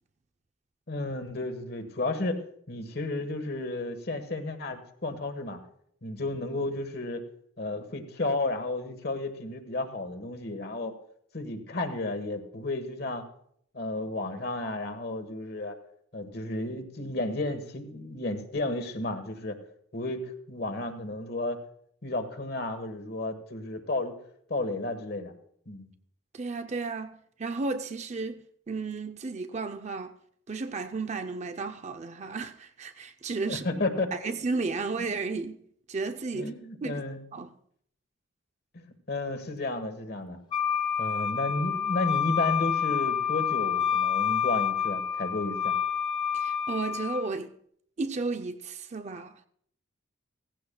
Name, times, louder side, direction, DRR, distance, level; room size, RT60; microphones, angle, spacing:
voice 1, 0.9-5.6 6.0-7.3 7.6-10.9 11.3-13.3 13.7-15.8 16.1-19.6 19.9-21.6 22.0-24.1 24.5-25.3 25.7-25.9 33.4-34.1 36.3-37.2 38.7-40.4 41.0-45.7, left 2 dB, 55° left, 1.3 m, -32 dB
voice 2, 26.3-30.2 30.5-33.7 34.1-35.6 35.9-36.5 36.8-37.0 37.3-37.5 46.3-47.5 48.0-49.4, right 3 dB, 35° right, 0.5 m, -33 dB
Wind instrument woodwind instrument, 40.5-47.3, left 8 dB, 25° left, 0.7 m, -28 dB
17.0 x 15.0 x 2.3 m
head